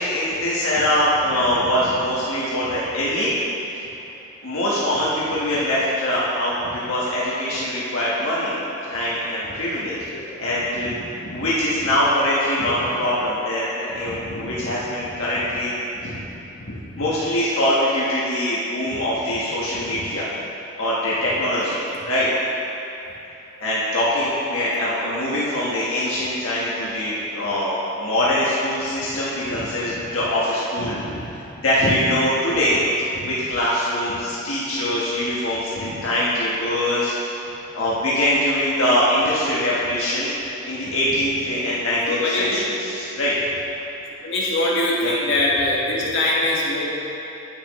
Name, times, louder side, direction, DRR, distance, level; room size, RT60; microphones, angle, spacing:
voice 1, 0.0-3.3 4.4-8.5 8.9-10.0 10.4-15.7 16.0-16.2 16.6-20.3 20.8-22.3 23.6-31.3 31.6-32.8 33.1-37.3 37.7-40.3 40.7-43.3 45.0-45.1, left 1 dB, 75° left, -8 dB, 1.3 m, -23 dB
voice 2, 42.1-42.6 44.2-46.8, left 2 dB, 55° left, -5 dB, 1.6 m, -22 dB
9.8 x 8.4 x 3.1 m, 3.0 s
head